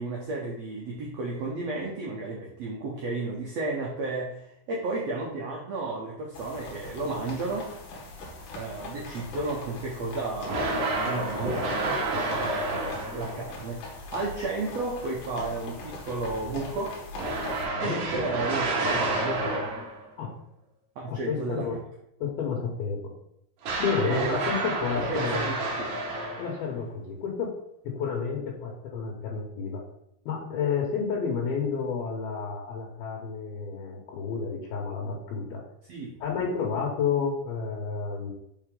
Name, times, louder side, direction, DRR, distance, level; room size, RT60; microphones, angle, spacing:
voice 1, 0.0-7.7 8.5-17.0 17.8-19.5 21.0-21.6 24.0-24.4 25.1-26.0 35.9-36.2, right 3 dB, 90° right, -3 dB, 1.4 m, -33 dB
sound 1, 6.3-17.7, left 2 dB, 65° left, 2.5 m, -41 dB
sound 2, 10.4-13.4 17.2-20.1 23.6-26.7, right 2 dB, 65° right, 2.3 m, -29 dB
voice 2, 17.6-18.0 20.2-20.4 21.1-21.8 22.2-23.0 23.8-25.5 26.4-27.5 27.8-29.8 30.3-35.6 36.2-38.3, left 6 dB, 85° left, -2 dB, 2.9 m, -30 dB
5.5 x 4.8 x 3.7 m, 0.78 s
omnidirectional pair, 4.3 m